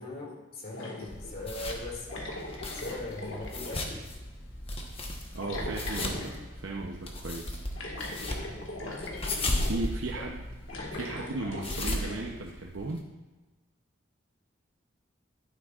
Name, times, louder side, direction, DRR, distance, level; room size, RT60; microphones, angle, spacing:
voice 1, 0.0-2.2 2.7-4.1 9.4-9.8 10.1-10.3, left 2 dB, 50° left, -3 dB, 2.3 m, -40 dB
sound 1, 0.7-1.4 2.1-4.0 5.4-6.4 7.8-9.8 10.6-12.3, left 1 dB, 85° left, 1.8 m, -39 dB
sound 2, 1.1-13.0, left 1 dB, 30° left, 1.1 m, -36 dB
voice 2, 5.3-7.7 9.7-10.5 10.9-13.0, right 2 dB, 80° right, 0 dB, 0.7 m, -36 dB
11.5 x 9.8 x 2.4 m, 1.2 s
head